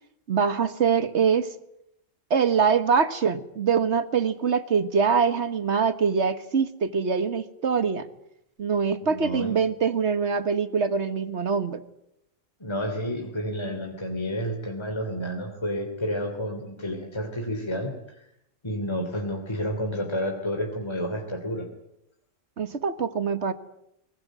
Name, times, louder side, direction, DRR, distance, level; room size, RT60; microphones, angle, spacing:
voice 1, 0.3-1.5 2.3-8.1 8.6-11.8 22.6-23.5, right 6 dB, 60° right, 12 dB, 1.7 m, -24 dB
voice 2, 9.0-9.5 12.6-17.9 18.6-21.6, equal, 20° left, 3 dB, 3.1 m, -30 dB
22.5 x 20.5 x 9.4 m, 0.78 s
omnidirectional pair, 1.3 m